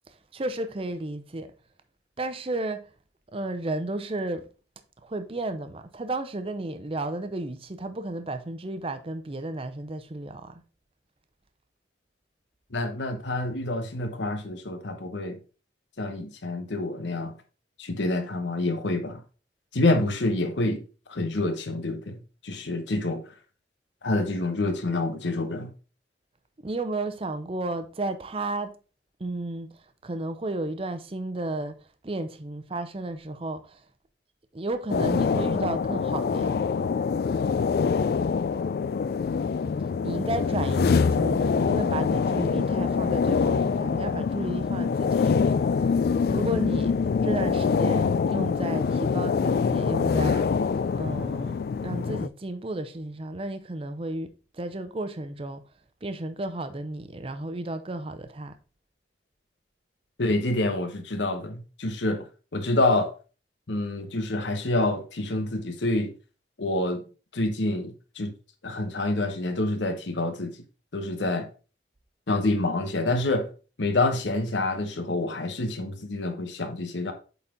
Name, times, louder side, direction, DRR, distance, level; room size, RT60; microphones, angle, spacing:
voice 1, 0.1-1.5 2.2-2.9 3.3-4.4 5.0-10.6 26.6-28.8 29.2-29.7 30.0-31.7 32.0-33.8 34.5-36.6 40.0-46.0 46.3-46.9 47.2-50.5 50.9-55.6 56.0-58.6, right 2 dB, 30° right, 0.6 m, -33 dB
voice 2, 12.7-15.4 16.0-17.3 17.8-19.2 19.7-20.8 21.1-23.2 24.0-25.7 60.2-62.3 62.5-63.1 63.7-66.1 66.6-67.0 67.3-68.3 68.6-70.6 70.9-71.5 72.3-73.5 73.8-77.1, left 2 dB, 90° left, 0.9 m, -27 dB
sound 1, 34.9-52.3, left 5 dB, 60° left, 0.3 m, -25 dB
8.1 x 4.1 x 3.6 m
head